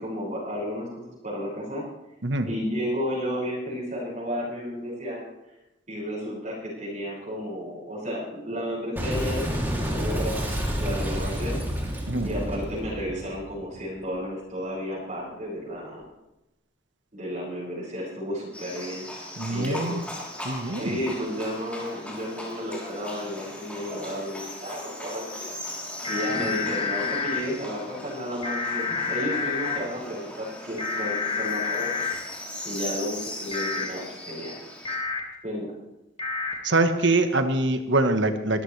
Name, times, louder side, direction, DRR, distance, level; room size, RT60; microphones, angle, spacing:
voice 1, 0.0-1.8 2.5-5.2 5.9-10.5 10.8-11.6 12.2-16.0 17.1-19.1 19.5-20.0 20.7-25.3 26.1-31.9 32.6-34.6 35.4-35.7, equal, 45° right, -7 dB, 6.0 m, -32 dB
Boom, 9.0-14.2, equal, 10° right, 2.9 m, -29 dB
Livestock farm animals working animals, 18.5-35.0, left 1 dB, 5° left, 3.5 m, -39 dB
voice 2, 19.4-20.0 20.4-21.0 36.6-38.6, right 2 dB, 75° right, 7 dB, 1.4 m, -24 dB
sound 1, 26.0-27.4 28.4-29.8 30.8-32.1 33.5-33.9 34.9-35.2 36.2-36.5, left 5 dB, 30° left, 2.1 m, -29 dB
22.5 x 13.5 x 3.4 m, 0.91 s
head